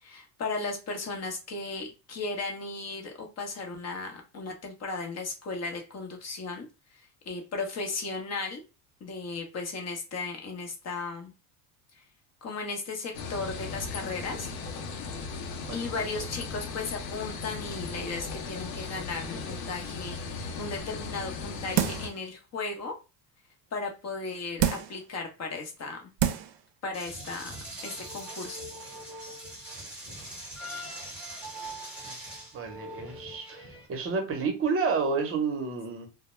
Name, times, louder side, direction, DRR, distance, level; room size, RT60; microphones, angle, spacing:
voice 1, 0.0-6.7 7.3-8.6 9.0-11.3 12.4-14.5 15.7-22.9 23.7-26.0 26.8-27.5 27.8-28.6, left 3 dB, 35° left, 0.8 m, -36 dB
sound 1, 13.1-22.1, left 4 dB, 85° left, 0.7 m, -37 dB
voice 2, 15.6-15.9 32.0-32.1 32.5-36.1, right 5 dB, 30° right, 0.8 m, -30 dB
sound 2, 21.8-22.2 22.7-22.8 24.6-25.0 25.7-25.8 26.2-26.6 27.0-27.1, right 10 dB, 60° right, 0.5 m, -27 dB
sound 3, 26.9-33.9, right 1 dB, 5° right, 0.9 m, -41 dB
2.2 x 2.1 x 2.9 m
supercardioid pair, 110°, 45 cm